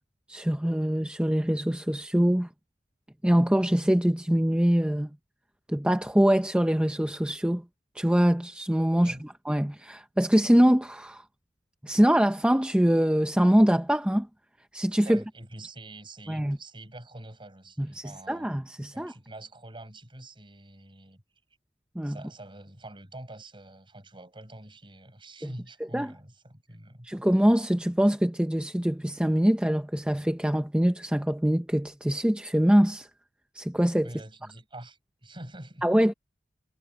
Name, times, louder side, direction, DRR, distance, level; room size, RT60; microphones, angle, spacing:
voice 1, 0.3-2.5 3.2-5.1 5.7-7.6 7.9-11.2 11.8-14.3 14.7-15.2 16.3-16.6 17.8-19.1 22.0-22.2 25.9-26.1 27.0-33.1 33.5-34.1 35.8-36.1, equal, 5° right, 0.6 m, -24 dB
voice 2, 15.0-18.5 18.9-21.2 22.0-27.1 34.0-35.9, right 1 dB, 30° right, 7.6 m, -45 dB
head